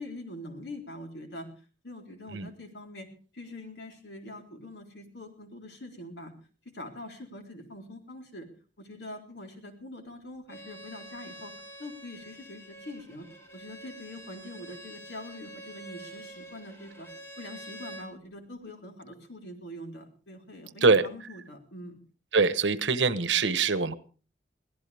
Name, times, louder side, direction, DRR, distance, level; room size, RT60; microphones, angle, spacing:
voice 1, 0.0-1.5 1.8-3.1 3.3-6.3 6.6-8.5 8.8-11.5 11.8-13.3 13.5-17.1 17.4-22.0, left 1 dB, 65° left, 4.0 m, -44 dB
Bowed string instrument, 10.5-18.1, right 1 dB, 15° left, 2.7 m, -47 dB
voice 2, 22.3-24.0, right 4 dB, 80° right, 1.2 m, -23 dB
23.0 x 17.0 x 3.5 m
head